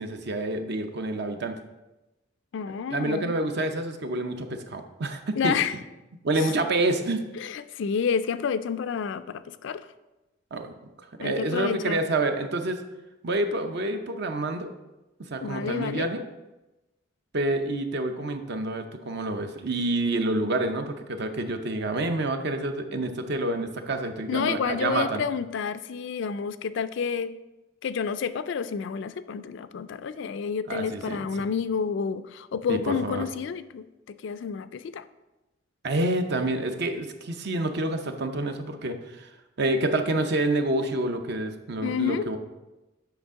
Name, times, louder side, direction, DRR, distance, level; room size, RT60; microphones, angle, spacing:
voice 1, 0.0-1.6 2.9-5.5 6.2-7.2 10.5-10.7 11.2-12.8 13.2-14.7 15.2-16.2 17.3-25.2 30.7-31.2 32.7-33.3 35.8-39.3 39.6-42.4, right 2 dB, 55° right, 7 dB, 0.7 m, -28 dB
voice 2, 2.5-3.3 5.4-5.7 6.4-6.5 7.4-9.9 11.2-12.0 15.4-16.1 24.3-27.3 27.8-35.0 41.8-42.2, left 6 dB, 60° left, 13 dB, 0.3 m, -29 dB
8.0 x 5.8 x 3.6 m, 1.0 s
head